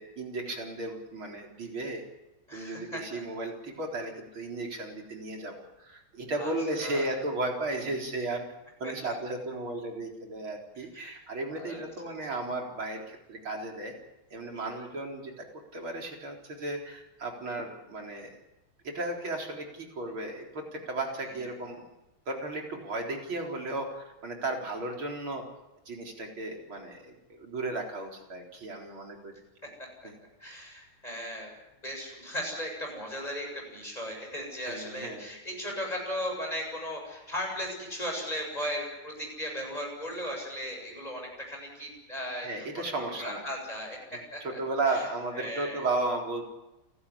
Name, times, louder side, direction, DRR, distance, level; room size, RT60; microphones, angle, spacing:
voice 1, 0.0-2.0 2.5-8.5 8.8-13.9 14.3-15.5 15.7-18.4 18.8-21.9 22.3-25.4 25.9-29.4 30.0-30.2 34.7-35.3 42.4-43.4 44.4-46.4, right 2 dB, 75° right, 1 dB, 4.9 m, -34 dB
voice 2, 2.5-3.2 6.3-6.5 6.8-7.1 8.8-9.1 10.9-11.3 11.6-11.8 14.5-14.7 21.2-21.3 30.4-31.5 31.8-42.5 42.7-44.0 44.3-44.6 44.9-45.0 45.3-45.9, equal, 20° left, 0 dB, 8.0 m, -37 dB
29.5 x 13.0 x 9.9 m, 0.98 s
omnidirectional pair, 2.3 m